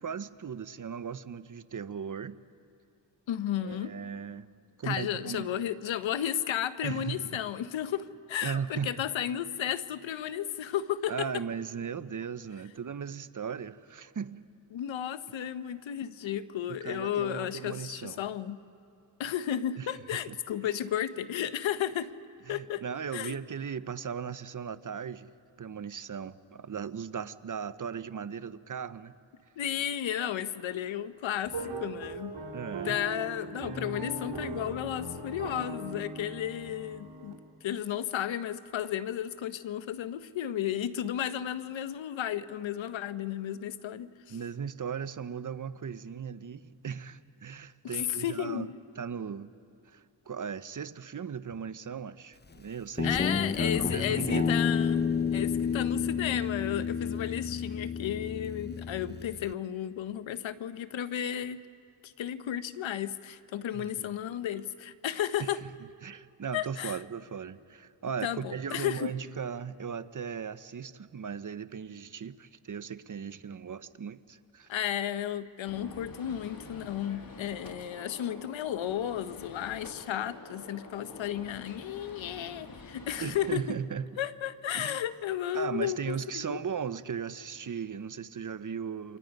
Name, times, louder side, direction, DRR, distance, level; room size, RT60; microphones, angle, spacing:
voice 1, 0.0-2.4 3.6-4.5 4.8-5.5 6.8-7.3 8.4-8.9 11.1-14.4 16.8-18.2 19.8-19.9 20.3-20.4 22.5-25.3 25.6-29.1 32.5-33.0 44.3-48.7 49.0-49.5 49.9-53.2 53.4-54.5 63.7-64.1 65.4-65.7 66.0-74.7 83.2-84.1 84.7-85.0 85.5-89.2, right 7 dB, 45° right, 0.9 m, -37 dB
voice 2, 3.3-3.9 4.8-11.4 14.7-18.6 19.2-22.1 22.5-22.8 23.1-23.4 29.6-32.4 32.8-44.4 47.8-48.8 53.0-55.0 55.3-61.6 62.0-65.6 66.5-67.0 68.2-69.1 74.7-83.6 84.2-86.6, left 10 dB, 85° left, 0.9 m, -33 dB
sound 1, 31.4-37.3, right 2 dB, 70° right, 3.0 m, -39 dB
Guitar, 53.0-59.5, left 6 dB, 25° left, 0.6 m, -30 dB
Gunshot gunfire, 75.7-83.6, left 3 dB, 50° left, 2.6 m, -47 dB
29.0 x 25.5 x 5.3 m
cardioid pair, 55°, 45 cm